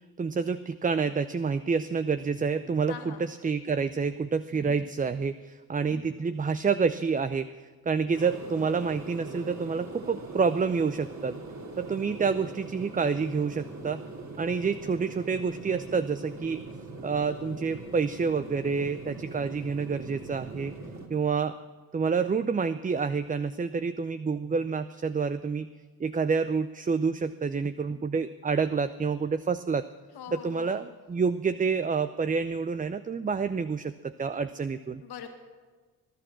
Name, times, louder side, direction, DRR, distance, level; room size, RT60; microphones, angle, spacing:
voice 1, 0.2-7.5 7.9-11.4 11.8-14.0 14.4-16.6 17.0-20.7 21.1-21.5 21.9-25.7 26.0-29.8 30.3-35.0, right 5 dB, 20° right, 12 dB, 0.6 m, -28 dB
voice 2, 2.9-3.2 30.1-30.9 35.0-35.3, left 8 dB, 65° left, 5 dB, 2.1 m, -42 dB
sound 1, 8.1-21.1, right 3 dB, 40° right, 3.3 m, -42 dB
20.5 x 11.0 x 6.1 m, 1.4 s
hypercardioid pair, 50°, 42 cm